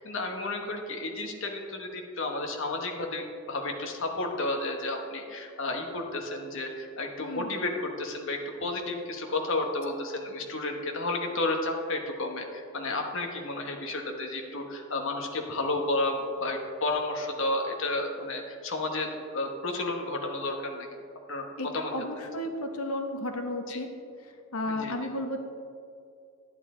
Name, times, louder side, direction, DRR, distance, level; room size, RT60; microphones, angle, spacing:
voice 1, 0.0-19.1 19.3-20.9 21.3-21.5 21.7-21.9 23.7-23.8 24.7-25.0, left 2 dB, 60° left, 2 dB, 1.2 m, -32 dB
voice 2, 7.2-7.5 21.6-23.9 24.2-25.4, left 1 dB, 85° left, 5 dB, 1.0 m, -33 dB
11.0 x 9.0 x 3.8 m, 2.4 s
head